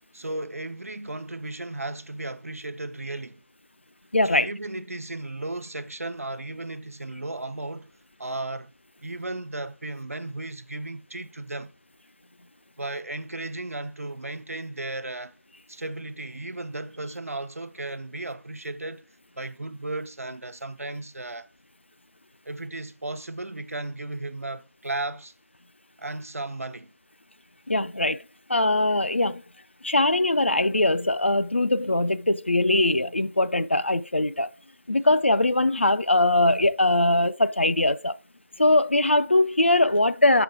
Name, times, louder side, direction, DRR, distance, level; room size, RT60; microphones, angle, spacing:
voice 1, 0.1-3.4 4.2-7.9 8.2-8.7 9.0-11.7 12.8-15.3 15.7-19.1 19.3-21.5 22.4-25.3 26.0-26.9, right 2 dB, 70° right, 0.8 m, -35 dB
voice 2, 4.1-4.5 27.7-28.2 28.5-29.4 29.8-34.5 34.9-38.1 38.6-40.4, left 2 dB, 50° left, 0.5 m, -21 dB
7.2 x 6.9 x 3.7 m
figure-of-eight pair, 180°, 8 cm